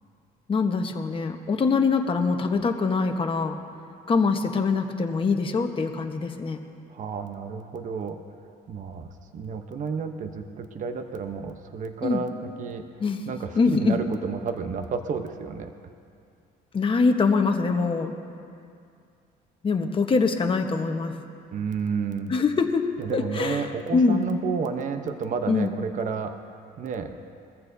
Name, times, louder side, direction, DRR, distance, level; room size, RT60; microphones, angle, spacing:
voice 1, 0.5-3.6 4.1-6.6 12.0-12.2 13.0-13.2 13.5-14.0 16.7-18.1 19.6-21.1 22.3-22.9 23.1-23.6 23.9-24.3 25.5-25.7, left 4 dB, 30° left, 4 dB, 1.2 m, -23 dB
voice 2, 6.9-8.2 8.7-12.3 12.6-12.8 13.3-15.7 21.5-22.3 23.0-26.3 26.8-27.1, right 5 dB, 50° right, 7 dB, 0.9 m, -31 dB
22.5 x 14.5 x 2.8 m, 2.4 s
cardioid pair, 110°, 17 cm